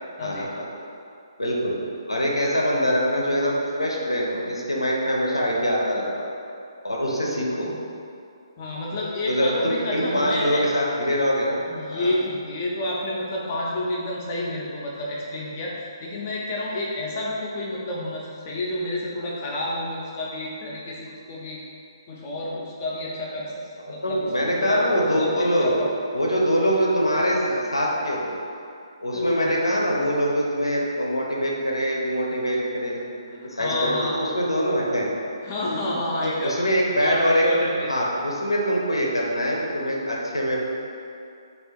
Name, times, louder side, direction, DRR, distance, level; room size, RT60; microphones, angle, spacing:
voice 1, 0.2-0.7 1.4-1.7 2.1-6.3 6.8-7.7 9.3-11.6 11.9-12.1 24.0-25.7 26.1-28.3 29.0-33.0 33.3-35.1 36.2-37.4 37.9-40.6, equal, 85° left, -3 dB, 0.6 m, -24 dB
voice 2, 7.3-7.8 8.6-10.6 11.6-15.7 16.0-21.6 22.1-23.5 23.8-25.9 29.1-29.6 33.3-34.2 35.4-36.6 37.0-37.9, left 1 dB, 30° left, -4 dB, 0.4 m, -29 dB
3.3 x 2.4 x 3.6 m, 2.5 s
figure-of-eight pair, 135°, 3 cm